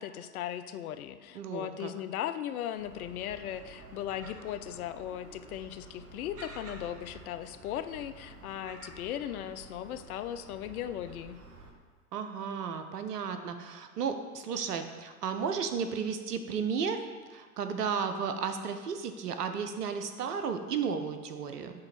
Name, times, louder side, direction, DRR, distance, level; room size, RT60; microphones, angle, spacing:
voice 1, 0.0-11.4, left 11 dB, 65° left, 11 dB, 0.6 m, -37 dB
voice 2, 1.3-1.9 12.1-17.0 17.3-21.7, right 6 dB, 80° right, 7 dB, 0.8 m, -33 dB
Gull seagull, 2.8-11.7, right 3 dB, 30° right, 1.2 m, -50 dB
7.5 x 3.0 x 5.8 m, 1.5 s
figure-of-eight pair, 90°, 46 cm